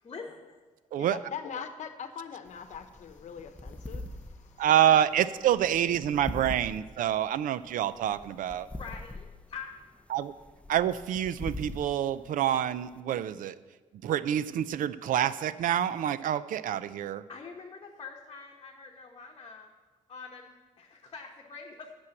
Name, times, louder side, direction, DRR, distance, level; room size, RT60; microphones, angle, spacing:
voice 1, 0.0-0.6 8.8-9.7 17.3-19.7 20.1-21.9, left 5 dB, 35° left, 0 dB, 0.9 m, -45 dB
voice 2, 1.0-5.0, left 7 dB, 60° left, 9 dB, 0.9 m, -42 dB
sound 1, 2.5-13.0, left 1 dB, 10° left, 0.5 m, -43 dB
voice 3, 4.6-8.7 10.1-10.3 10.7-13.6 14.0-17.2, right 10 dB, 75° right, 15 dB, 0.4 m, -27 dB
8.7 x 6.1 x 7.7 m, 1.3 s
cardioid pair, 150°, 14 cm